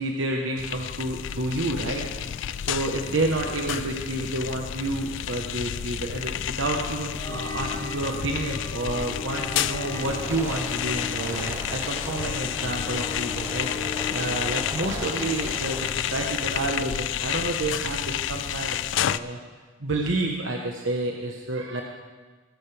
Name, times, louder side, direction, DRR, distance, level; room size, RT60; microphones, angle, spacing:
voice 1, 0.0-2.0 2.6-19.4 19.8-21.8, right 2 dB, 80° right, 0 dB, 1.2 m, -29 dB
sound 1, 0.6-19.2, left 10 dB, 70° left, 0.3 m, -31 dB
sound 2, 7.1-14.7, left 5 dB, 15° left, 2.8 m, -37 dB
sound 3, 9.9-16.7, right 1 dB, 15° right, 0.8 m, -38 dB
20.5 x 11.0 x 3.5 m, 1.3 s
head